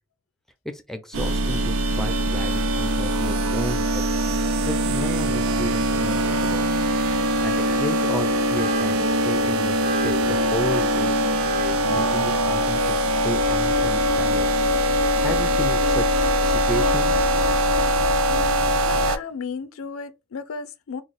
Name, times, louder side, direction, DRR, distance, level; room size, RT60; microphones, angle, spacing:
voice 1, 0.6-4.1 4.6-6.7 7.4-11.2 11.9-14.7 15.2-17.3, equal, ahead, 0.5 m, -33 dB
sound 1, 1.1-19.2, equal, 85° right, 0.5 m, -22 dB
sound 2, 4.8-14.5, right 3 dB, 45° right, 0.7 m, -37 dB
voice 2, 18.3-21.0, left 5 dB, 75° left, 0.5 m, -34 dB
3.0 x 2.4 x 4.0 m
head